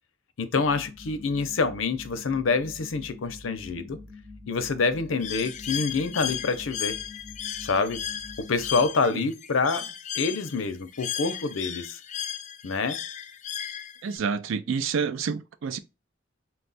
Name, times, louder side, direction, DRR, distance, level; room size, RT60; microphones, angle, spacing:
voice 1, 0.4-4.0 4.5-7.0 7.6-8.0 8.4-12.0 12.6-13.0, left 4 dB, 85° left, 0.6 m, -27 dB
sound 1, 0.5-8.9, left 3 dB, 5° right, 0.6 m, -46 dB
Bird, 5.2-14.2, left 9 dB, 40° left, 0.4 m, -35 dB
voice 2, 14.0-15.8, right 5 dB, 75° right, 0.4 m, -28 dB
4.4 x 2.3 x 4.0 m
head